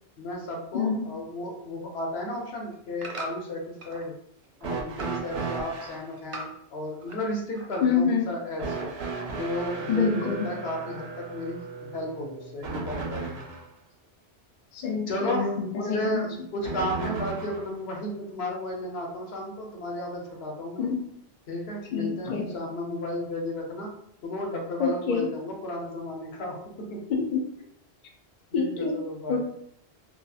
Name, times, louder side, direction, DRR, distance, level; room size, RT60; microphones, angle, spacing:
voice 1, 0.2-4.1 4.6-8.9 9.4-13.5 15.1-20.8 21.5-23.9 24.2-27.0 28.5-29.4, left 1 dB, 75° left, 0 dB, 0.9 m, -33 dB
voice 2, 0.7-1.1 7.8-8.3 9.9-10.5 14.7-15.6 15.9-16.3 20.8-21.0 21.9-22.5 24.8-25.3 27.1-27.5 28.5-29.0 29.3-29.4, left 5 dB, 60° left, 1 dB, 0.6 m, -26 dB
sound 1, 2.2-4.1 4.4-5.2 5.5-7.3 7.5-8.1 8.6-8.7, right 2 dB, 55° right, 0.3 m, -41 dB
sound 2, 4.6-6.1 8.6-13.7 16.6-17.7 18.9-19.0 20.1-20.2, right 4 dB, 85° right, 0.8 m, -35 dB
2.7 x 2.3 x 2.3 m, 0.70 s
omnidirectional pair, 1.1 m